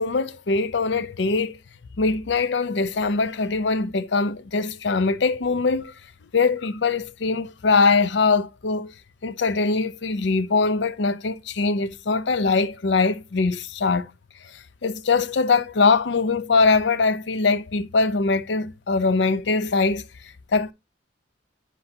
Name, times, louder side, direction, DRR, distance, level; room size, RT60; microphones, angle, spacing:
voice 1, 0.0-1.6 2.0-5.9 6.3-8.9 9.2-14.1 14.8-20.0 20.5-20.7, left 4 dB, 65° left, 0.5 m, -22 dB
10.0 x 5.4 x 2.7 m
head